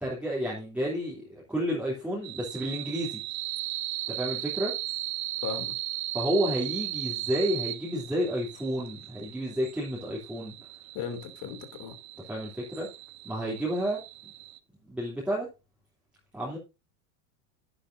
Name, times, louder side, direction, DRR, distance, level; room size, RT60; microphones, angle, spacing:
voice 1, 0.0-3.2 4.1-4.7 6.1-10.6 12.3-12.9 13.2-14.3 14.9-15.5 16.3-16.6, equal, 5° right, 3.1 m, -31 dB
sound 1, 2.2-14.6, right 17 dB, 70° right, 1.0 m, -37 dB
voice 2, 5.4-5.7 10.9-12.0, left 7 dB, 50° left, 2.9 m, -36 dB
11.0 x 10.0 x 2.7 m
supercardioid pair, 120°, 43 cm